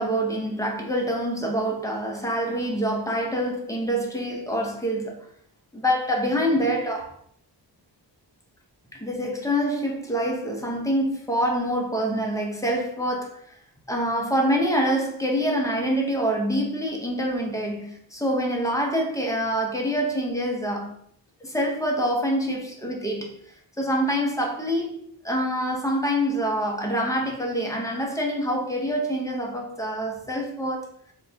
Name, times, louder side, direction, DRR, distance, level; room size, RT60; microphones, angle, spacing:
voice 1, 0.0-5.2 5.7-7.1 8.9-13.4 13.9-21.0 21.4-23.4 23.8-25.0 25.2-31.1, equal, 10° left, 0.6 m, -26 dB
4.1 x 2.2 x 3.3 m
wide cardioid pair, 130°, 42 cm